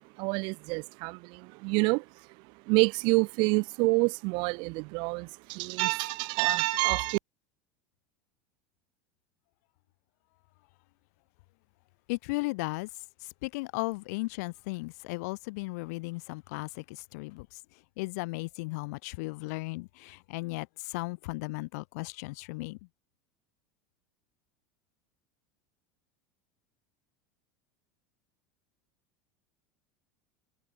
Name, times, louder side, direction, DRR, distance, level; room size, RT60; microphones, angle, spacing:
voice 1, 0.0-2.0 2.7-7.2, right 30 dB, 60° right, 0.6 m, -27 dB
voice 2, 12.1-12.9 13.4-17.5 18.0-22.8, left 25 dB, 70° left, 1.1 m, -35 dB
supercardioid pair, 115°, 9 cm